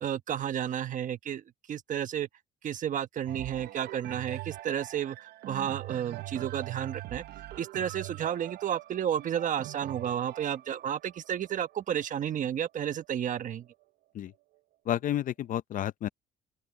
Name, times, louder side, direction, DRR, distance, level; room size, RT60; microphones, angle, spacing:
voice 1, 0.0-2.3 2.6-7.2 7.6-13.7, right 9 dB, 50° right, 1.3 m, -32 dB
sound 1, 3.3-13.0 13.7-13.8, right 17 dB, 70° right, 0.7 m, -43 dB
voice 2, 14.9-16.1, left 11 dB, 55° left, 0.6 m, -31 dB
open air
cardioid pair, 110°, 17 cm